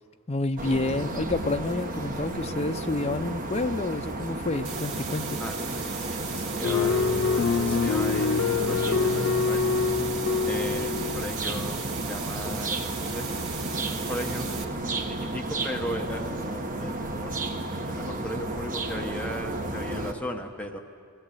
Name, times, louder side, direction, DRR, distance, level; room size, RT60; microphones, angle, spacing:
voice 1, 0.3-5.4, left 2 dB, 30° left, 8 dB, 0.6 m, -29 dB
sound 1, 0.6-20.1, right 2 dB, 40° right, 1.3 m, -32 dB
sound 2, 4.6-14.6, right 6 dB, 65° right, 2.5 m, -38 dB
voice 2, 5.4-7.1 7.6-9.7 10.4-13.3 13.7-14.5 15.1-17.3 17.9-20.8, left 1 dB, 5° left, 2 dB, 1.1 m, -37 dB
sound 3, 6.6-11.3, left 5 dB, 80° left, 0.5 m, -25 dB
23.0 x 17.0 x 8.4 m, 2.4 s
head